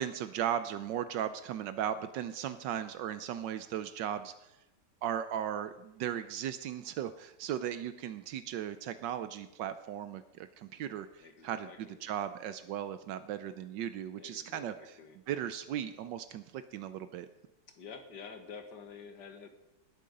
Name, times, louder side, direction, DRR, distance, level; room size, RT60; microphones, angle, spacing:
voice 1, 0.0-4.6 5.0-14.7 15.3-17.3, right 10 dB, 80° right, 11 dB, 1.3 m, -37 dB
voice 2, 11.2-12.1 14.2-15.2 17.7-19.5, left 5 dB, 70° left, 7 dB, 2.1 m, -49 dB
19.0 x 8.6 x 5.3 m, 0.91 s
omnidirectional pair, 1.9 m